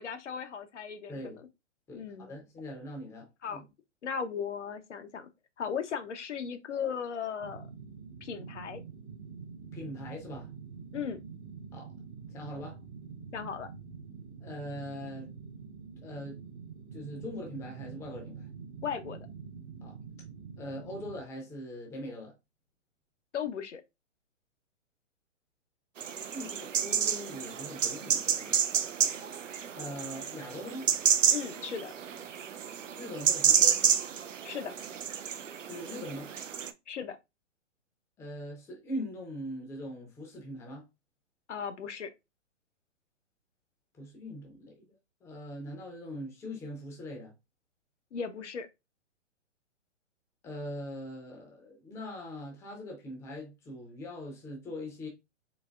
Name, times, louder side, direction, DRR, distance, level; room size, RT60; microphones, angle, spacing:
voice 1, 0.0-1.4 1.9-2.3 3.4-3.7 4.0-5.3 5.6-7.7 8.2-8.8 10.9-11.2 13.3-13.7 18.8-19.2 23.3-23.8 31.3-31.9 34.4-34.7 36.9-37.2 41.5-42.1 48.1-48.7, left 7 dB, 70° left, 0.7 m, -36 dB
voice 2, 1.9-3.6 9.7-10.5 11.7-11.9 12.3-12.8 14.4-15.3 16.0-16.4 16.9-18.5 19.8-20.0 20.6-22.3 26.3-28.6 29.7-30.9 33.0-33.9 35.6-36.3 38.2-40.8 44.0-44.9 45.2-47.3 50.4-55.1, left 1 dB, 10° left, 0.6 m, -41 dB
sound 1, 7.4-21.2, right 6 dB, 40° right, 0.8 m, -46 dB
sound 2, 26.0-36.7, right 8 dB, 90° right, 0.5 m, -29 dB
4.0 x 2.7 x 2.3 m
figure-of-eight pair, 125°, 37 cm